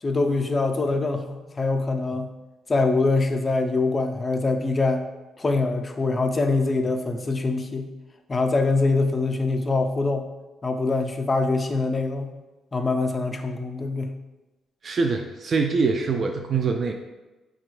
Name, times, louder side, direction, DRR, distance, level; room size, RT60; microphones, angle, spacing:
voice 1, 0.0-2.3 2.7-5.0 5.4-7.9 8.3-10.3 10.6-12.3 12.7-14.2, left 3 dB, 30° left, 5 dB, 0.4 m, -24 dB
voice 2, 14.8-16.9, right 4 dB, 45° right, 3 dB, 0.3 m, -24 dB
4.8 x 2.3 x 3.1 m, 1.1 s
cardioid pair, 90°, 0 cm